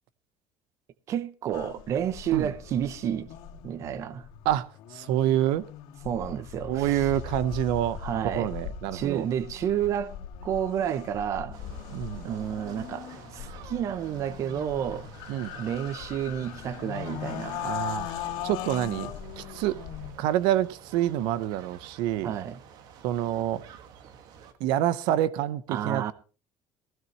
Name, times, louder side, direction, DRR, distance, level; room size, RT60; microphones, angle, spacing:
voice 1, 1.1-3.3 3.6-4.3 6.0-7.1 8.0-8.5 8.9-10.2 10.4-11.6 12.2-15.1 15.5-17.8 22.2-22.6 25.7-26.1, right 9 dB, 40° right, 0.8 m, -30 dB
sound 1, 1.5-20.1, left 10 dB, 70° left, 2.1 m, -39 dB
voice 2, 4.4-5.7 6.7-9.3 11.9-12.3 15.3-15.5 17.6-18.1 18.4-19.1 19.4-19.8 20.2-22.3 23.0-23.6 24.6-26.1, right 12 dB, 75° right, 0.8 m, -27 dB
sound 2, 11.5-24.5, right 7 dB, 55° right, 1.6 m, -49 dB
16.0 x 15.5 x 3.0 m
cardioid pair, 170°, 8 cm